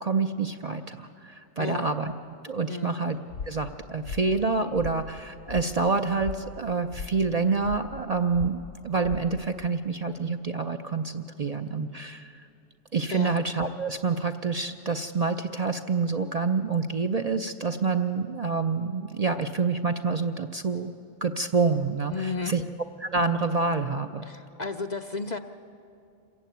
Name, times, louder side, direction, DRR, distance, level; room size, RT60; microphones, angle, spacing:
voice 1, 0.0-2.1 2.4-3.2 3.5-12.3 12.9-20.9 21.2-22.6 23.0-24.2, right 4 dB, 40° right, 6 dB, 0.6 m, -27 dB
voice 2, 1.6-1.9 2.7-3.0 13.1-13.4 22.1-22.5 24.2-25.4, left 4 dB, 45° left, 7 dB, 0.6 m, -33 dB
sound 1, 3.3-9.7, left 5 dB, 90° left, 1.1 m, -40 dB
27.0 x 15.0 x 9.3 m, 2.6 s
omnidirectional pair, 1.2 m